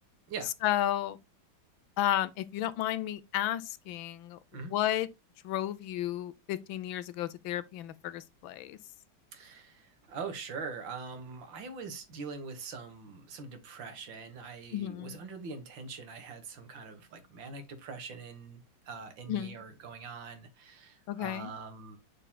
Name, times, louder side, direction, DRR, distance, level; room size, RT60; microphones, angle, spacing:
voice 1, 0.6-1.2 2.0-4.4 4.7-5.1 5.4-8.8 14.7-15.2 19.3-19.6 21.1-21.5, left 12 dB, 75° left, 1.3 m, -32 dB
voice 2, 9.3-22.0, right 4 dB, 70° right, 2.0 m, -43 dB
7.3 x 6.7 x 2.2 m
omnidirectional pair, 2.2 m